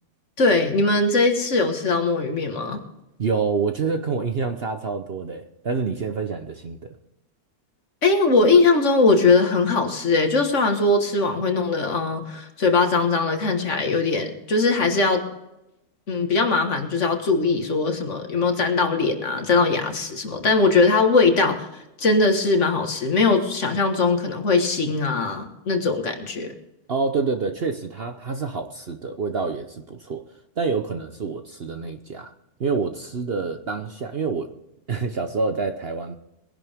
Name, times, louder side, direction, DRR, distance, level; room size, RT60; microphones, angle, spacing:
voice 1, 0.4-2.8 8.0-15.2 16.1-21.7 22.0-26.5, left 3 dB, 50° left, 5 dB, 1.8 m, -20 dB
voice 2, 3.2-7.0 26.9-32.3 32.6-34.5 34.9-36.2, right 4 dB, 50° right, 7 dB, 0.9 m, -27 dB
21.5 x 11.0 x 3.5 m, 0.91 s
omnidirectional pair, 1.6 m